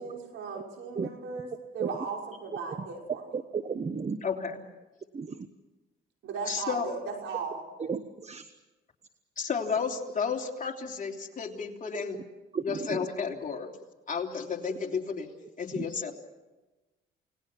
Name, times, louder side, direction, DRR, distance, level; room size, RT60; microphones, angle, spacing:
voice 1, 0.0-3.4 6.2-7.6, right 5 dB, 75° right, 1 dB, 5.8 m, -37 dB
voice 2, 3.3-4.2 5.1-5.4 7.9-8.4 12.5-13.0 15.8-15.9, right 5 dB, 35° right, 10 dB, 1.2 m, -33 dB
voice 3, 4.2-4.6 6.5-6.9 9.4-12.2 12.6-13.7 14.1-15.3 15.6-16.1, left 6 dB, 40° left, 2 dB, 3.3 m, -32 dB
29.0 x 19.5 x 6.1 m, 1.1 s
cardioid pair, 90°, 20 cm